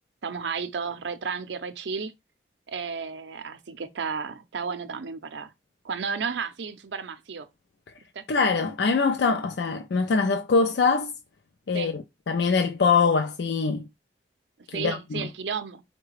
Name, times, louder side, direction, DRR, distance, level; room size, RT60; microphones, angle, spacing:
voice 1, 0.2-2.1 2.7-5.5 5.8-7.5 8.1-8.2 11.7-11.9 14.7-15.8, right 5 dB, 75° right, 0.5 m, -33 dB
voice 2, 8.3-11.1 11.7-13.9 14.7-15.3, left 4 dB, 70° left, 0.4 m, -23 dB
4.7 x 2.2 x 4.7 m
head